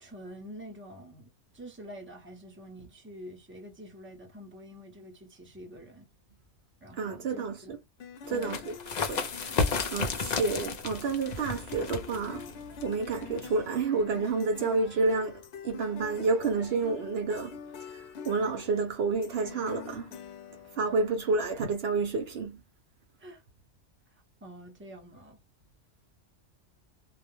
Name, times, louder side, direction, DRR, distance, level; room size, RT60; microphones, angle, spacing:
voice 1, 0.0-6.1 6.8-7.7 8.3-8.7 20.9-21.0 23.2-23.4 24.4-25.4, equal, 10° right, 0.7 m, -47 dB
voice 2, 7.0-7.8 8.3-8.7 9.1-12.5 12.8-20.1 20.8-22.6, right 4 dB, 65° right, 0.8 m, -30 dB
sound 1, 8.0-21.2, left 7 dB, 75° left, 0.8 m, -46 dB
sound 2, 8.3-13.7, left 4 dB, 50° left, 0.6 m, -33 dB
2.3 x 2.1 x 3.0 m
omnidirectional pair, 1.2 m